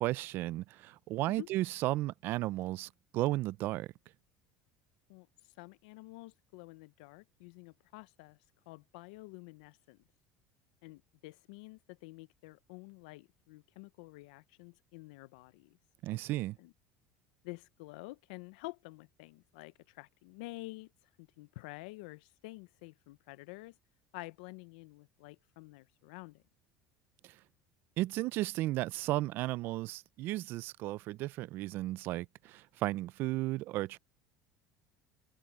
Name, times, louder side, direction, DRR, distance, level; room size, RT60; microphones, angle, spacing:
voice 1, 0.0-3.9 16.0-16.6 28.0-34.0, right 17 dB, 55° right, 0.5 m, -34 dB
voice 2, 5.1-8.4 8.7-10.0 10.8-15.8 16.6-16.7 17.4-20.9 21.2-23.8 24.1-26.4, left 22 dB, 85° left, 0.6 m, -49 dB
cardioid pair, 130°, 4 cm